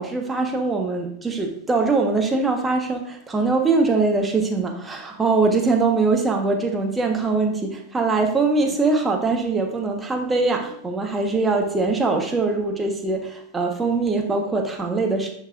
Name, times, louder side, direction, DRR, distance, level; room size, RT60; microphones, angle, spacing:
voice 1, 0.0-15.3, right 3 dB, 10° right, 3 dB, 1.2 m, -22 dB
10.5 x 5.4 x 2.5 m, 0.72 s
figure-of-eight pair, 90°, 0 cm